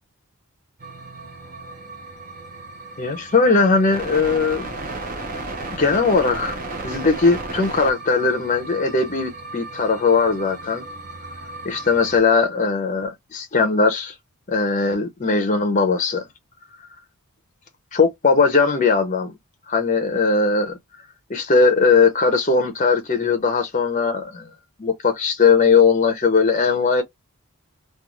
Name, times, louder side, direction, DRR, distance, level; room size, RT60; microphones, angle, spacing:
sound 1, 0.8-12.2, right 2 dB, 40° right, 0.7 m, -34 dB
voice 1, 3.0-4.7 5.7-6.6 6.8-10.8 11.6-14.1 14.5-16.2 17.9-19.3 19.7-20.8 21.3-24.5 24.8-27.0, left 4 dB, 35° left, 0.6 m, -19 dB
2.4 x 2.3 x 3.0 m
head